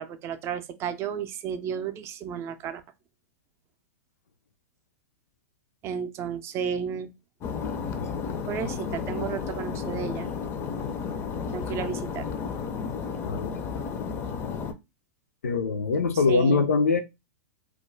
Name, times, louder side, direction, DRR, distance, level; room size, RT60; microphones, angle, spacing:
voice 1, 0.0-2.8 5.8-7.1 8.5-10.3 11.5-12.3 16.3-16.6, right 7 dB, 35° right, 0.4 m, -33 dB
sound 1, 7.4-14.7, left 6 dB, 30° left, 0.4 m, -32 dB
voice 2, 13.2-13.6 15.4-17.0, left 4 dB, 85° left, 0.5 m, -23 dB
2.3 x 2.1 x 3.1 m
hypercardioid pair, 110°, 8 cm